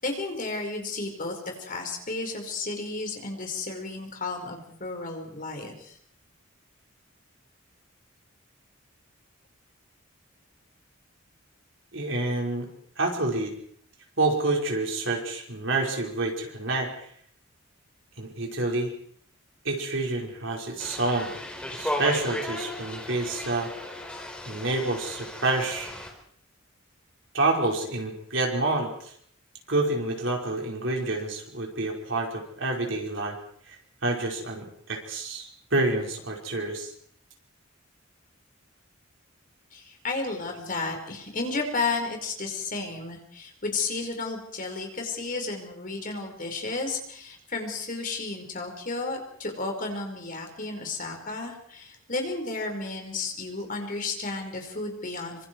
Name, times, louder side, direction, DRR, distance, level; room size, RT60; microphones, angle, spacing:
voice 1, 0.0-5.9 39.7-55.5, left 3 dB, 40° left, 3 dB, 5.1 m, -33 dB
voice 2, 11.9-12.7 13.0-13.5 14.2-16.9 18.2-18.9 19.6-21.3 21.7-23.7 24.5-25.9 27.3-29.1 29.7-33.4 33.7-36.9, right 2 dB, 60° right, 0 dB, 5.4 m, -28 dB
sound 1, 20.8-26.1, left 1 dB, 5° left, 4.6 m, -35 dB
27.0 x 25.5 x 4.8 m, 0.63 s
head